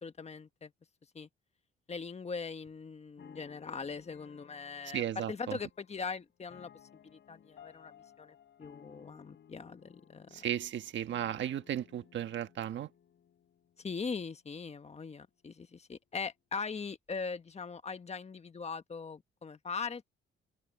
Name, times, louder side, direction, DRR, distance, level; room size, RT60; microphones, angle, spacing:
voice 1, 0.0-0.7 1.1-1.3 1.9-6.7 7.0-10.5 13.8-20.0, left 5 dB, 35° left, 1.5 m, -41 dB
sound 1, 3.2-14.3, left 9 dB, 65° left, 5.7 m, -59 dB
voice 2, 4.9-5.6 10.3-12.9, right 10 dB, 70° right, 1.4 m, -35 dB
cardioid pair, 90°, 20 cm